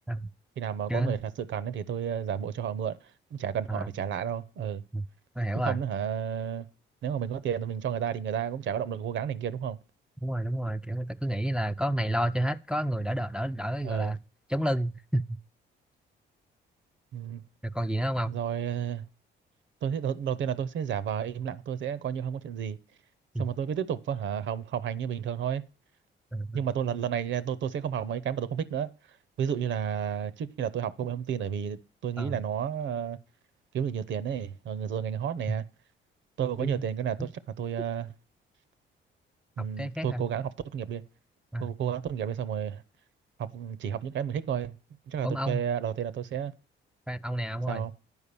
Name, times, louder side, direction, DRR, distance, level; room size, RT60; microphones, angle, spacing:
voice 1, 0.6-3.0 3.3-4.8 5.5-6.7 7.0-9.8 13.8-14.2 17.1-17.4 18.3-19.0 19.8-22.8 23.4-25.6 26.5-28.9 29.4-33.2 33.7-35.6 36.4-37.3 37.6-38.1 39.6-41.0 41.6-42.8 43.4-44.8 45.1-46.5 47.7-47.9, right 8 dB, 70° right, 0.8 m, -31 dB
voice 2, 5.4-5.8 10.2-14.2 14.5-15.4 17.6-18.3 23.3-23.5 26.3-26.6 32.2-32.4 35.5-35.6 36.6-36.8 37.2-37.3 39.6-40.3 41.5-41.7 45.2-45.6 47.1-47.8, right 1 dB, 5° right, 0.4 m, -30 dB
9.9 x 4.8 x 6.8 m
cardioid pair, 90°, 20 cm